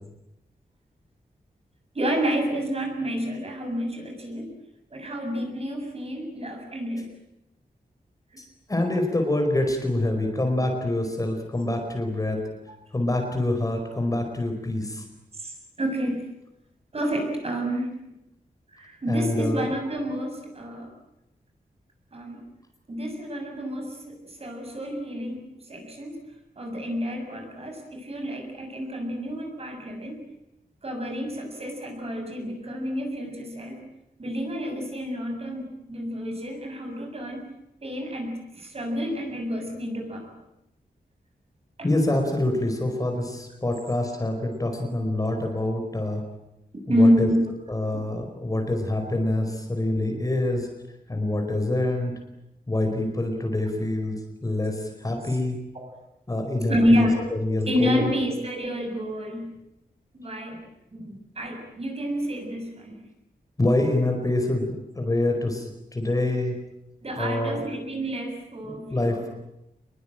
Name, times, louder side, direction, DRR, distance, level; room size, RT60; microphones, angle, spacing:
voice 1, 1.9-4.5 4.9-7.1 12.7-12.8 15.4-16.3 16.9-17.9 18.7-20.9 22.1-22.4 22.9-26.2 26.6-30.2 30.8-33.8 34.2-37.5 37.8-40.3 41.8-42.0 46.9-47.5 55.2-55.4 55.7-55.9 56.7-57.3 57.7-59.5 60.1-60.6 60.9-63.0 67.0-69.3, equal, 40° right, 3 dB, 7.2 m, -28 dB
voice 2, 8.4-12.4 12.9-15.0 19.1-19.7 41.8-46.2 46.9-47.3 47.7-50.7 51.1-52.2 52.7-55.6 56.3-58.2 63.6-66.6 67.2-67.6 68.6-69.3, left 1 dB, 20° left, 4 dB, 4.8 m, -26 dB
27.5 x 22.0 x 9.1 m, 0.88 s
wide cardioid pair, 165°, 16 cm